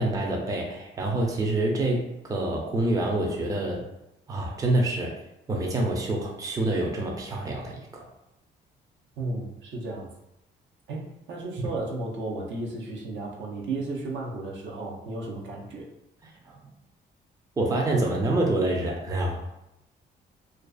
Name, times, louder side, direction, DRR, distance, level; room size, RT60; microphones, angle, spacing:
voice 1, 0.0-3.9 4.3-5.2 5.5-8.1 16.4-16.7 17.6-19.5, right 2 dB, 15° right, 0 dB, 0.4 m, -27 dB
voice 2, 9.2-10.1 10.9-15.9, right 2 dB, 70° right, -1 dB, 0.7 m, -34 dB
2.4 x 2.3 x 2.3 m, 0.87 s
cardioid pair, 90°, 20 cm